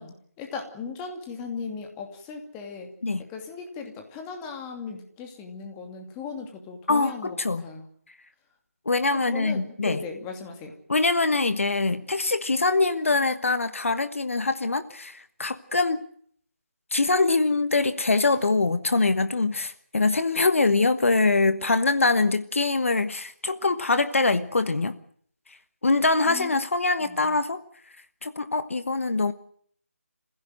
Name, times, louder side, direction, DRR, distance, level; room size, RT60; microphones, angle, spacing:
voice 1, 0.0-2.9 3.3-7.4 7.6-7.8 9.1-10.7 26.2-26.5 27.0-27.3, left 5 dB, 15° left, 4 dB, 2.6 m, -37 dB
voice 2, 6.9-7.7 8.8-10.0 10.9-16.0 16.9-25.0 25.8-27.6 28.2-29.3, left 3 dB, 60° left, 12 dB, 1.3 m, -23 dB
27.0 x 16.0 x 7.8 m, 0.63 s
figure-of-eight pair, 160°, 8 cm